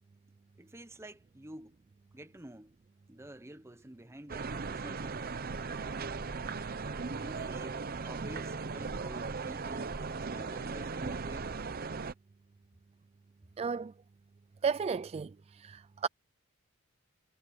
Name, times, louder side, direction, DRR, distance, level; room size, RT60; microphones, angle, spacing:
voice 1, 0.6-1.8 2.1-2.8 3.1-5.2 7.1-11.7, right 1 dB, 15° right, 1.0 m, -50 dB
sound 1, 4.3-12.1, right 4 dB, 45° right, 0.7 m, -37 dB
voice 2, 13.6-13.9 14.6-16.1, right 6 dB, 30° right, 0.3 m, -34 dB
head